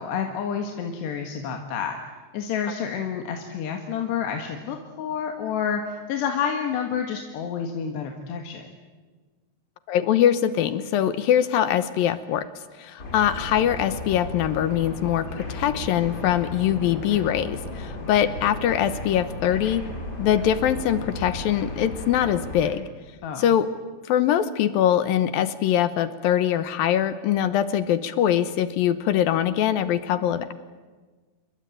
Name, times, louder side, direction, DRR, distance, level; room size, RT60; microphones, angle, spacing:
voice 1, 0.0-2.0 2.3-8.7 23.2-23.4, left 7 dB, 90° left, 4 dB, 3.9 m, -29 dB
voice 2, 9.9-12.5 12.8-19.9 20.2-22.8 23.4-23.7 24.1-30.5, left 10 dB, 70° left, 13 dB, 2.5 m, -23 dB
sound 1, 13.0-22.7, left 2 dB, 25° left, 5.3 m, -35 dB
29.0 x 22.5 x 9.2 m, 1.4 s
omnidirectional pair, 4.7 m